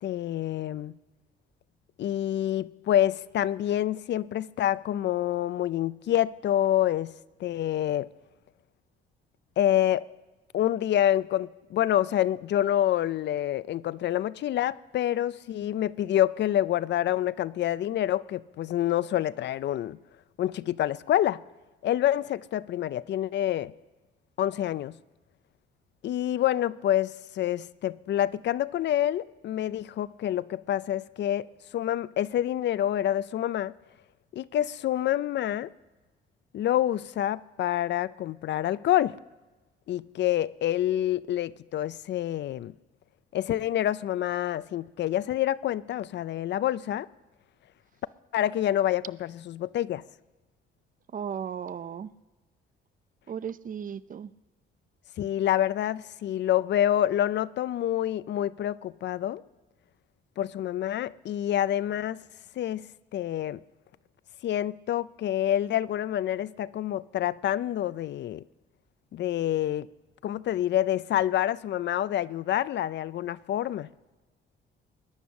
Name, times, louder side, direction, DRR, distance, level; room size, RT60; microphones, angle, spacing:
voice 1, 0.0-1.0 2.0-7.1 7.4-8.1 9.6-10.1 10.5-20.0 20.4-21.4 21.8-23.7 24.4-24.9 26.0-31.5 31.7-33.7 34.3-35.7 36.5-39.2 39.9-42.7 43.3-47.1 48.3-50.0 55.2-59.4 60.4-62.2 62.6-62.8 63.1-63.6 64.4-68.4 69.1-69.9 70.2-73.9, left 12 dB, 60° left, 0.5 m, -27 dB
voice 2, 51.1-52.1 53.3-54.3, right 8 dB, 45° right, 0.6 m, -35 dB
21.0 x 10.0 x 6.4 m
cardioid pair, 90°, 20 cm